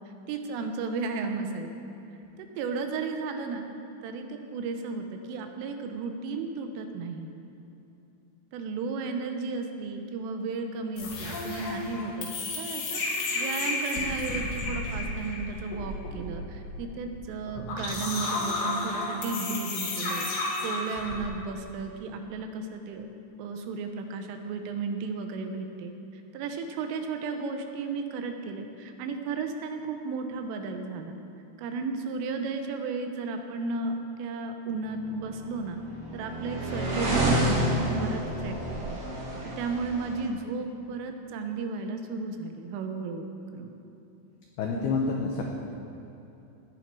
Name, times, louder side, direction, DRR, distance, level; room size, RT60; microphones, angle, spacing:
voice 1, 0.3-1.7 2.4-3.7 4.0-7.3 8.5-20.3 20.6-23.1 23.4-31.2 31.6-35.8 36.1-38.6 38.9-39.0 39.4-43.7, right 4 dB, 80° right, 5 dB, 3.4 m, -34 dB
sound 1, 11.0-21.2, left 2 dB, 70° left, 4.5 m, -32 dB
sound 2, 35.3-40.2, right 1 dB, 35° right, 3.3 m, -29 dB
voice 2, 44.6-45.4, left 4 dB, 90° left, 0 dB, 2.2 m, -28 dB
17.5 x 10.5 x 4.7 m, 2.9 s
omnidirectional pair, 5.9 m